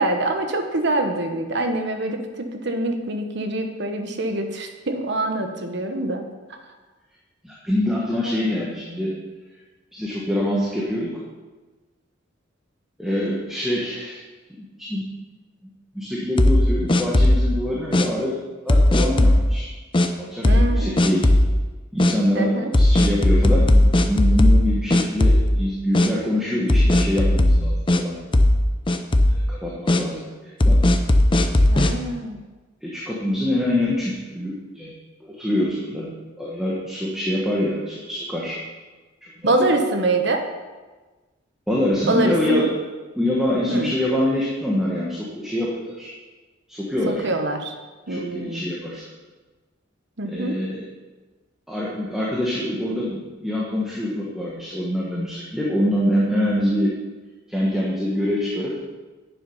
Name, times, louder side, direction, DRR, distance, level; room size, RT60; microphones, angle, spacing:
voice 1, 0.0-6.2 8.2-8.3 20.4-21.0 22.3-22.7 31.7-32.4 39.4-40.4 42.0-42.7 43.7-43.9 47.1-47.7 48.1-48.7 50.2-50.6, right 2 dB, 65° right, 5 dB, 1.2 m, -24 dB
voice 2, 7.4-9.1 9.9-11.2 13.0-14.2 14.6-15.0 15.9-18.4 18.6-19.7 20.2-21.2 21.9-28.2 29.3-30.8 32.8-34.9 35.2-36.1 36.4-38.6 39.2-39.6 41.7-42.7 43.1-46.1 46.7-47.2 48.1-49.1 50.2-50.9 51.7-56.9 57.5-58.9, left 1 dB, ahead, -6 dB, 1.5 m, -25 dB
sound 1, 16.4-17.5 17.9-18.1 18.7-19.4 19.9-20.1 20.4-20.7 21.0-21.5 22.0-22.1 22.7-24.7 24.9-25.6 25.9-26.1 26.7-28.0 28.3-28.6 28.9-29.4 29.9-30.0 30.6-31.9, left 1 dB, 25° left, 0.6 m, -16 dB
9.9 x 7.4 x 5.5 m, 1.3 s
head